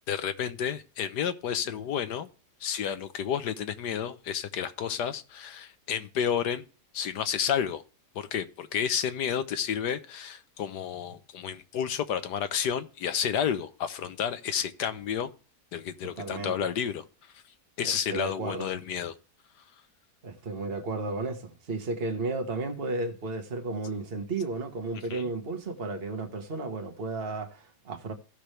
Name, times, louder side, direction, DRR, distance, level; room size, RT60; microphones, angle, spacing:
voice 1, 0.1-2.3 2.6-6.6 6.9-7.8 8.1-15.3 15.7-17.4 17.8-19.1 25.1-25.3, left 8 dB, 85° left, 1.6 m, -31 dB
voice 2, 16.2-16.7 17.8-18.7 20.2-28.1, right 3 dB, 40° right, 1.6 m, -33 dB
16.0 x 6.1 x 3.2 m
omnidirectional pair, 1.7 m